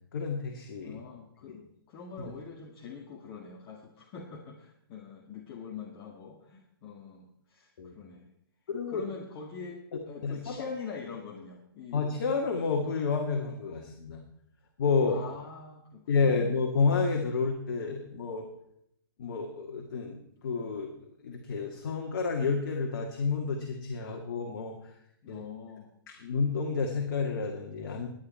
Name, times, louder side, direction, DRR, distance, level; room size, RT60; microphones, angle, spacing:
voice 1, 0.1-1.0 7.8-7.9 8.7-9.0 10.2-10.6 11.9-14.2 14.8-15.2 16.1-18.5 19.2-20.2 20.4-20.9 21.2-24.8 25.3-25.4 26.2-28.1, left 4 dB, 50° left, 1 dB, 2.1 m, -30 dB
voice 2, 0.8-8.3 8.9-9.8 10.1-12.1 15.1-16.5 25.2-25.9, left 5 dB, 30° left, -1 dB, 1.9 m, -44 dB
20.5 x 9.5 x 4.4 m, 0.74 s
figure-of-eight pair, 130°, 12 cm